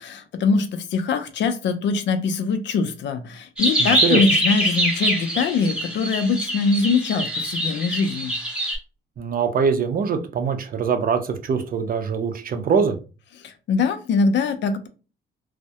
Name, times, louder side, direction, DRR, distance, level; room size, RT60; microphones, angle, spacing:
voice 1, 0.0-8.3 13.4-14.9, left 4 dB, 65° left, 9 dB, 0.5 m, -23 dB
sound 1, 3.6-8.8, right 1 dB, 5° right, 0.7 m, -24 dB
voice 2, 3.8-4.2 9.2-12.9, right 6 dB, 45° right, 6 dB, 0.5 m, -23 dB
2.2 x 2.0 x 2.7 m, 0.33 s
cardioid pair, 90°, 20 cm